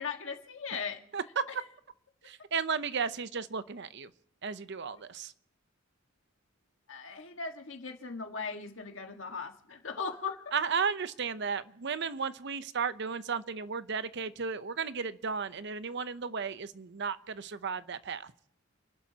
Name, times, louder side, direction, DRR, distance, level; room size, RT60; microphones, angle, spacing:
voice 1, 0.0-1.0 1.5-1.6 6.9-10.5, left 5 dB, 70° left, 4 dB, 1.7 m, -38 dB
voice 2, 1.1-1.4 2.2-4.1 4.4-5.3 10.5-18.3, right 5 dB, 60° right, 13 dB, 0.8 m, -34 dB
30.0 x 11.5 x 2.9 m, 0.76 s
head